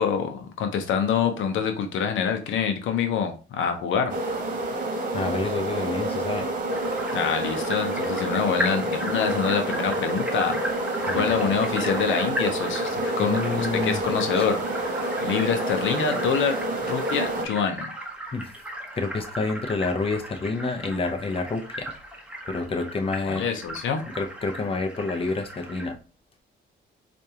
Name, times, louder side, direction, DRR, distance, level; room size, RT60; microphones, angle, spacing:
voice 1, 0.0-4.1 7.1-10.6 11.1-14.6 15.2-16.6 16.9-17.9 23.2-24.0, left 7 dB, 80° left, 0.7 m, -26 dB
sound 1, 4.1-17.4, right 1 dB, 40° right, 1.3 m, -28 dB
voice 2, 5.1-6.5 11.1-11.6 13.2-14.0 14.4-14.5 18.3-18.4 19.0-21.9 22.5-23.5 24.2-26.0, left 3 dB, 30° left, 0.7 m, -28 dB
sound 2, 6.7-25.9, equal, 5° right, 1.1 m, -37 dB
4.5 x 2.6 x 2.8 m
cardioid pair, 90°, 20 cm